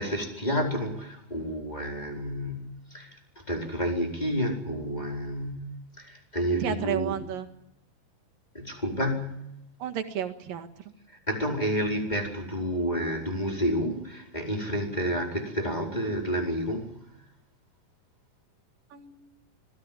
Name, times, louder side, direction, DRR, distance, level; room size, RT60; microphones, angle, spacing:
voice 1, 0.0-7.2 8.5-9.5 11.1-17.0, equal, 10° left, 1 dB, 4.7 m, -30 dB
voice 2, 6.6-7.5 9.8-10.7 18.9-19.2, right 9 dB, 90° right, 7 dB, 3.6 m, -32 dB
26.0 x 19.0 x 7.7 m, 0.81 s
omnidirectional pair, 3.8 m